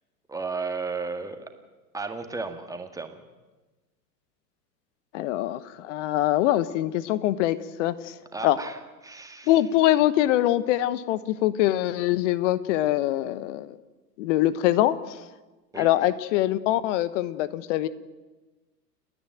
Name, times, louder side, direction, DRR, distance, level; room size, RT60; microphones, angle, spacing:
voice 1, 0.3-1.5 1.9-3.2 8.3-9.6 15.7-15.9, right 4 dB, 5° right, 6 dB, 1.9 m, -34 dB
voice 2, 5.1-8.1 8.4-8.6 9.5-13.8 14.2-15.2 15.7-17.9, left 14 dB, 45° left, 17 dB, 1.1 m, -23 dB
30.0 x 10.0 x 9.1 m, 1.2 s
figure-of-eight pair, 95°, 49 cm